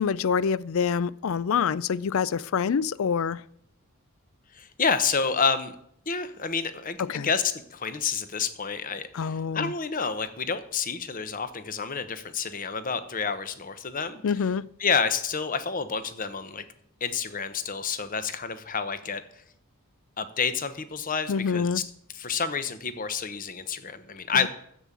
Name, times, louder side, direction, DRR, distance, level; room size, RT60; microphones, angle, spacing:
voice 1, 0.0-3.4 7.0-7.3 9.1-9.7 14.2-14.7 21.3-21.8 24.3-24.5, left 6 dB, 65° left, 0.4 m, -26 dB
voice 2, 4.5-5.7 6.1-14.2 14.8-16.6 17.0-19.2 20.2-21.8 22.1-24.5, left 5 dB, 35° left, 0.9 m, -29 dB
10.5 x 7.5 x 8.3 m
head